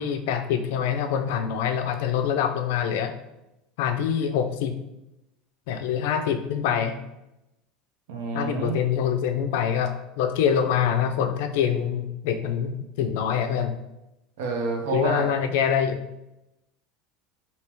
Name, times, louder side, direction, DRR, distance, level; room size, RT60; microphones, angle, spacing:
voice 1, 0.0-3.1 3.8-4.7 5.7-7.0 8.3-13.7 14.9-16.0, left 8 dB, 70° left, 7 dB, 0.4 m, -25 dB
voice 2, 8.1-8.8 14.4-15.3, right 3 dB, 75° right, 2 dB, 0.7 m, -28 dB
3.4 x 2.8 x 2.9 m, 0.91 s
cardioid pair, 175°, 0 cm